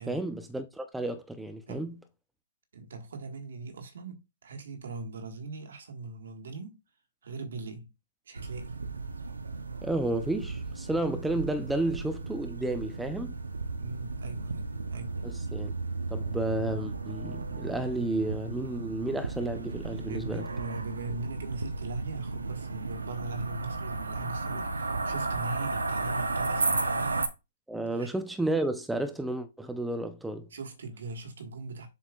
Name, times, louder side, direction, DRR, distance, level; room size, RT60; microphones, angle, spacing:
voice 1, 0.1-1.9 9.8-13.3 15.2-15.7 16.1-20.5 27.7-30.5, right 2 dB, 5° right, 0.8 m, -32 dB
voice 2, 2.7-6.8 7.2-7.9 8.3-8.8 13.8-15.2 20.0-27.2 27.9-28.1 30.5-31.9, right 3 dB, 70° right, 1.8 m, -40 dB
sound 1, 8.4-27.3, right 3 dB, 90° right, 0.9 m, -34 dB
7.3 x 5.4 x 2.5 m
hypercardioid pair, 125°, 0 cm